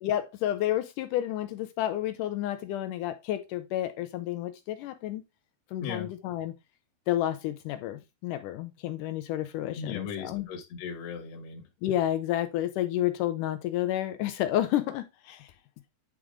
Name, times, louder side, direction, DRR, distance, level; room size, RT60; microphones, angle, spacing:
voice 1, 0.0-5.2 5.7-6.5 7.1-10.5 11.8-15.5, left 13 dB, 80° left, 1.9 m, -30 dB
voice 2, 9.8-11.6, left 6 dB, 55° left, 2.1 m, -37 dB
10.0 x 4.7 x 3.7 m
omnidirectional pair, 4.4 m